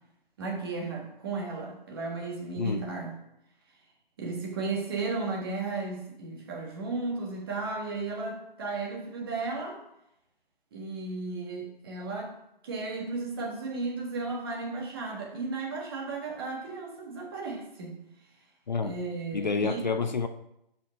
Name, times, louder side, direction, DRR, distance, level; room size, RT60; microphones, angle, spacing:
voice 1, 0.4-3.1 4.2-9.8 10.7-12.3 12.6-17.9 18.8-19.8, right 3 dB, 25° right, -1 dB, 1.5 m, -34 dB
voice 2, 19.3-20.3, left 5 dB, 50° left, 9 dB, 0.5 m, -28 dB
7.5 x 5.2 x 5.2 m, 0.81 s
hypercardioid pair, 165°, 30 cm